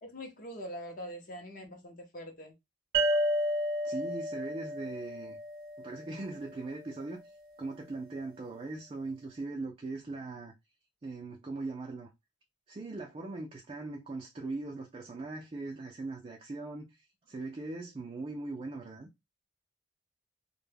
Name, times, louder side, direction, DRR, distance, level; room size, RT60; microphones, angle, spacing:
voice 1, 0.0-2.5, equal, 45° left, 0.6 m, -43 dB
sound 1, 2.9-6.4, right 1 dB, 50° right, 0.7 m, -32 dB
voice 2, 3.8-5.4 5.8-7.3 7.6-10.5 11.0-12.1 12.7-19.1, right 3 dB, 30° right, 0.3 m, -40 dB
2.1 x 2.1 x 3.3 m
head